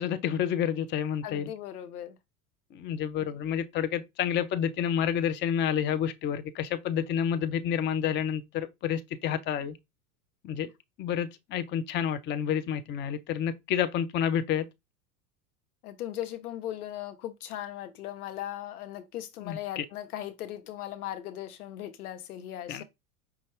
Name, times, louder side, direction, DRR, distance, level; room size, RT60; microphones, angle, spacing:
voice 1, 0.0-1.5 2.7-9.8 10.4-10.7 11.0-14.7 19.4-19.8 22.7-22.8, left 9 dB, 25° left, 0.5 m, -29 dB
voice 2, 1.2-2.2 3.2-3.3 15.8-22.8, left 12 dB, 75° left, 0.8 m, -38 dB
5.3 x 2.3 x 3.2 m
hypercardioid pair, 85°, 45 cm